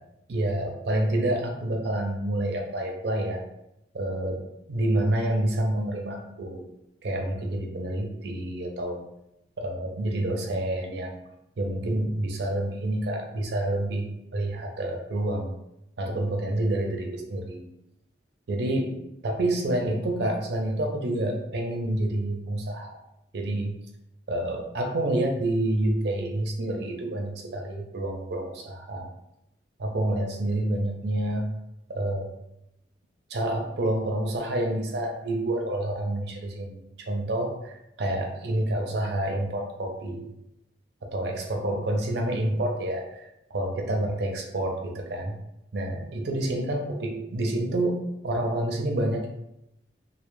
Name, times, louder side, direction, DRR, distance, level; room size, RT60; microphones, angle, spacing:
voice 1, 0.3-3.4 3.9-4.4 4.7-6.7 7.0-9.0 9.6-11.2 11.6-14.1 14.3-15.5 16.0-17.6 18.5-18.9 19.2-23.0 23.3-23.8 24.3-29.1 29.8-31.4 31.9-32.3 33.3-36.8 37.1-40.3 41.0-45.3 45.7-49.3, right 1 dB, 65° right, 2 dB, 0.4 m, -28 dB
2.1 x 2.0 x 3.0 m, 0.84 s
head